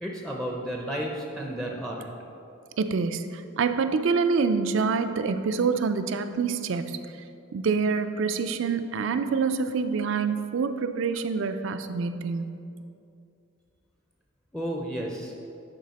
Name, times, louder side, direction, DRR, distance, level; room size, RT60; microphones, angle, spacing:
voice 1, 0.0-2.1 14.5-15.3, equal, 5° left, -1 dB, 0.5 m, -32 dB
voice 2, 2.8-7.2 7.5-12.6, right 5 dB, 60° right, 9 dB, 0.4 m, -26 dB
10.5 x 4.2 x 4.1 m, 2.6 s
head